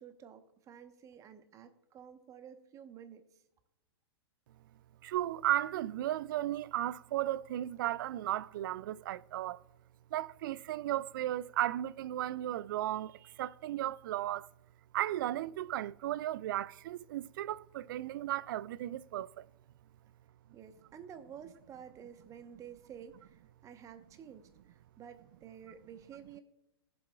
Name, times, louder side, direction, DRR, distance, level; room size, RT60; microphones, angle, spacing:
voice 1, 0.0-3.4 20.5-26.4, right 8 dB, 25° right, 1.0 m, -51 dB
voice 2, 5.0-9.6 10.1-14.5 14.9-19.5, right 13 dB, 55° right, 0.4 m, -35 dB
20.5 x 7.6 x 2.3 m
hypercardioid pair, 110°, 13 cm